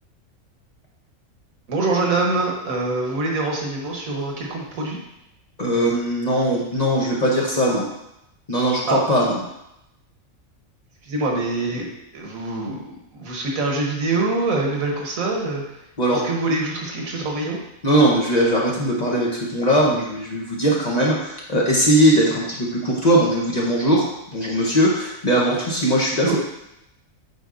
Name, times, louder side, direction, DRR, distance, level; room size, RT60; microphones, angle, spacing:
voice 1, 1.7-5.0 8.9-9.0 11.0-15.6 16.1-17.6 26.2-26.4, right 3 dB, 85° right, -1 dB, 1.6 m, -24 dB
voice 2, 5.6-7.9 8.5-9.4 16.0-16.2 17.8-24.0 24.3-26.4, right 1 dB, 35° left, -4 dB, 1.0 m, -20 dB
7.9 x 4.7 x 2.5 m, 0.85 s
omnidirectional pair, 1.4 m